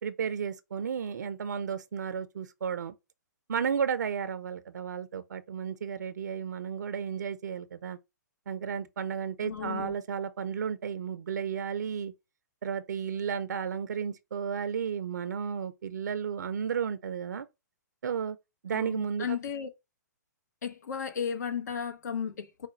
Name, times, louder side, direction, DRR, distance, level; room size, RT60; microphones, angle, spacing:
voice 1, 0.0-2.9 3.5-8.0 8.5-12.1 12.6-17.5 18.0-18.4 18.6-19.4, right 7 dB, 70° right, 0.5 m, -33 dB
voice 2, 9.4-9.9 18.7-19.7 20.6-22.7, left 7 dB, 65° left, 1.0 m, -34 dB
4.8 x 2.2 x 4.4 m
hypercardioid pair, 130°, 10 cm